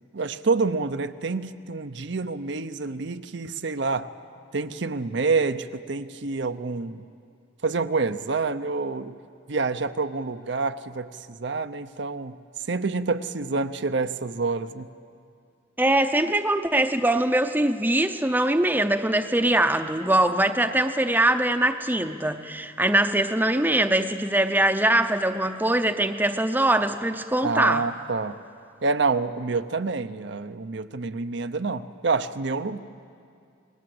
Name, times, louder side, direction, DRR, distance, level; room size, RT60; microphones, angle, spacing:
voice 1, 0.1-4.1 4.5-7.0 7.6-9.2 9.5-12.4 12.7-14.9 27.4-28.4 28.8-32.8, right 4 dB, 60° right, 10 dB, 0.7 m, -27 dB
voice 2, 15.8-27.8, right 1 dB, 10° right, 8 dB, 0.7 m, -22 dB
28.0 x 19.5 x 7.9 m, 2.4 s
head